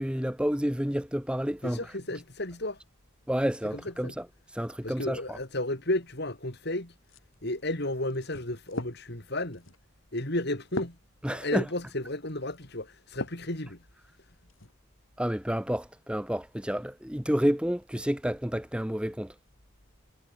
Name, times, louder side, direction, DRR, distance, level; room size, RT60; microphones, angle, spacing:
voice 1, 0.0-1.9 3.3-4.3 4.5-5.4 11.2-11.7 15.2-19.4, equal, 5° right, 1.0 m, -30 dB
voice 2, 1.6-2.8 4.0-4.1 4.8-6.9 7.4-9.7 10.1-11.0 11.3-13.9, left 1 dB, 50° left, 3.5 m, -33 dB
sound 1, 7.0-13.5 14.1-14.7, left 2 dB, 75° left, 3.8 m, -42 dB
head